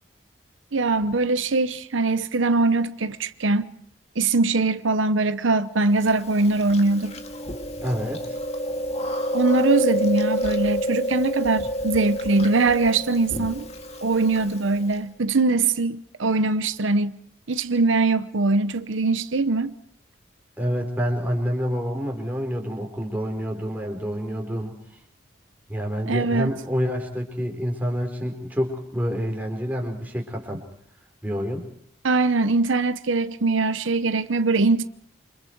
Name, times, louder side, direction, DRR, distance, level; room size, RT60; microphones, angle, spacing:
voice 1, 0.7-3.7 4.2-7.1 9.3-13.7 14.0-17.2 17.5-19.7 26.1-26.5 32.0-34.8, right 3 dB, 80° right, 0.8 m, -22 dB
Chewing mastication, 6.0-15.0, equal, 35° left, 2.1 m, -28 dB
voice 2, 7.8-8.4 20.6-24.8 25.7-30.6 31.2-31.6, equal, 10° right, 4.3 m, -27 dB
28.5 x 26.0 x 4.6 m
head